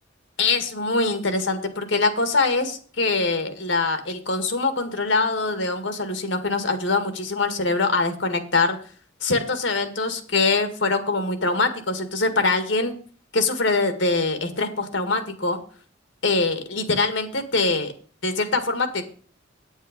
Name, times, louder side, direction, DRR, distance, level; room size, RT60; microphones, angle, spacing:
voice 1, 0.4-8.8 9.2-13.0 13.3-15.6 16.2-17.9 18.2-19.0, left 3 dB, 65° left, 9 dB, 1.9 m, -23 dB
9.4 x 9.2 x 5.2 m, 0.43 s
head